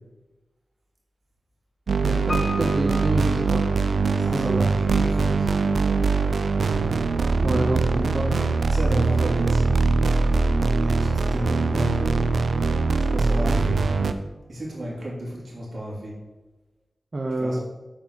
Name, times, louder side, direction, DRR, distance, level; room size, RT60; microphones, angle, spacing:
sound 1, 1.9-14.1, right 4 dB, 80° right, 0.5 m, -22 dB
voice 1, 2.0-3.6 4.3-4.7 7.4-8.3 17.1-17.6, right 1 dB, 45° right, 0 dB, 0.8 m, -27 dB
Piano, 2.3-4.3 4.6-4.7, left 2 dB, 40° left, 1.7 m, -35 dB
voice 2, 4.2-5.5 8.2-8.5 8.7-9.7 10.8-12.1 13.1-13.8 14.5-16.1 17.4-17.6, equal, 65° right, -3 dB, 2.8 m, -33 dB
7.2 x 4.5 x 5.9 m, 1.1 s
wide cardioid pair, 70°, 0 cm